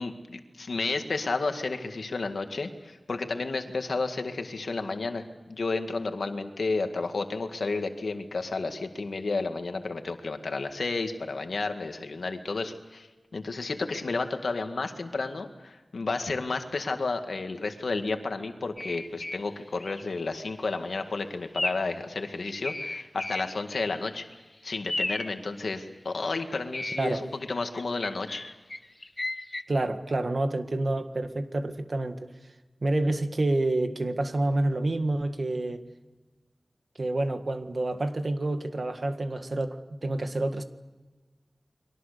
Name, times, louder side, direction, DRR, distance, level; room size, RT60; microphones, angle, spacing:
voice 1, 0.0-24.3 24.6-28.5, left 3 dB, 85° left, 6 dB, 1.9 m, -32 dB
sound 1, 18.8-19.5 19.8-20.1 20.5-20.8 21.5-22.0 22.3-24.1 24.3-24.4 24.9-25.4 26.3-27.0 27.7-29.6, left 2 dB, 35° left, 1.0 m, -34 dB
voice 2, 29.7-32.3 32.8-35.8 37.0-40.6, right 2 dB, 55° right, 8 dB, 1.8 m, -28 dB
30.0 x 23.0 x 6.8 m, 1.2 s
wide cardioid pair, 80°, 0 cm